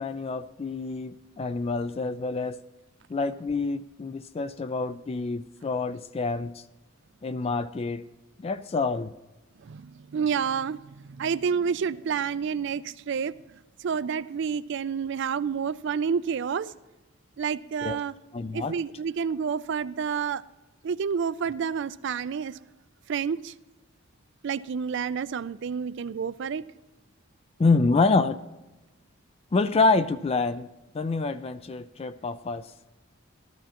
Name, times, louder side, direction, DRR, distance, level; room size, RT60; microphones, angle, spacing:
voice 1, 0.0-2.6 3.1-6.6 7.2-8.0 8.4-9.1 17.8-18.0 18.3-18.8 27.6-28.4 29.5-30.7 30.9-32.7, left 3 dB, 30° left, 0.3 m, -27 dB
voice 2, 9.6-13.3 13.8-16.7 17.4-18.1 18.5-20.4 20.8-22.6 23.1-23.5 24.4-26.7, right 6 dB, 60° right, 0.4 m, -29 dB
14.0 x 12.5 x 2.9 m
head